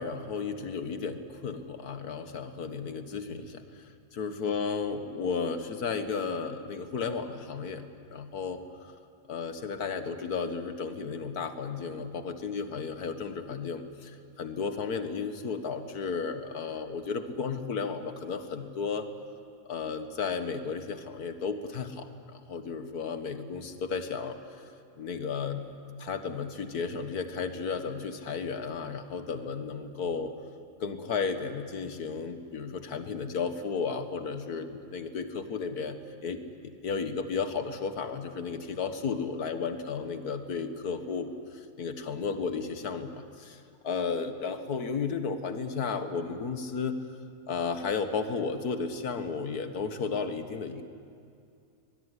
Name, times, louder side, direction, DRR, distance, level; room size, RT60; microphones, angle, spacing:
voice 1, 0.0-3.8 4.1-7.9 8.1-9.0 9.3-19.1 19.7-24.4 25.0-25.7 26.0-30.3 30.8-41.3 41.8-47.0 47.5-50.8, left 5 dB, 85° left, 8 dB, 2.0 m, -33 dB
23.0 x 21.5 x 9.8 m, 2.4 s
omnidirectional pair, 1.6 m